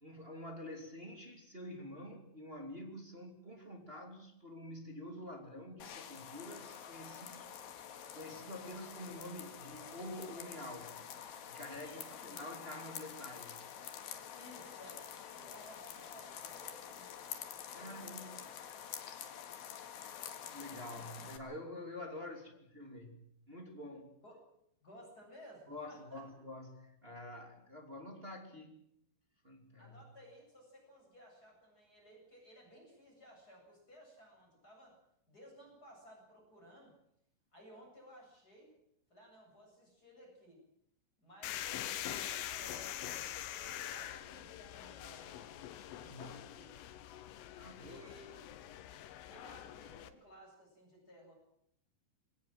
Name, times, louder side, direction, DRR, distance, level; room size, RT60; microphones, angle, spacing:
voice 1, 0.0-7.5 8.1-11.0 11.4-13.7 17.7-18.3 20.5-23.2 23.5-24.1 25.7-28.8 29.4-30.0 46.1-46.3 47.6-48.0, left 1 dB, 15° right, 2 dB, 2.2 m, -48 dB
sound 1, 5.8-21.4, left 9 dB, 60° left, 3.3 m, -48 dB
voice 2, 11.8-12.5 14.3-17.3 17.7-18.4 20.7-21.2 22.3-22.4 24.2-24.4 24.8-26.3 29.8-35.0 35.3-36.9 37.5-38.7 39.1-40.6 41.2-45.6 46.0-46.8 47.7-48.5 49.2-51.3, equal, 20° left, 0 dB, 8.2 m, -57 dB
sound 2, 41.4-50.1, left 12 dB, 85° left, 3.8 m, -44 dB
23.0 x 19.0 x 7.6 m, 0.75 s
omnidirectional pair, 5.7 m